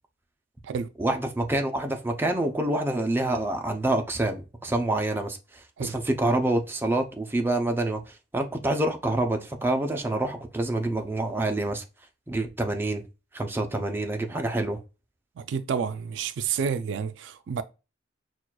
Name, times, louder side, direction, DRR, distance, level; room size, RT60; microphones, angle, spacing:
voice 1, 1.0-5.4 5.8-8.0 8.3-11.8 12.3-13.0 13.3-14.8, right 1 dB, 10° right, 0.5 m, -27 dB
voice 2, 15.4-17.6, right 6 dB, 80° right, 0.3 m, -29 dB
5.9 x 2.3 x 2.2 m
head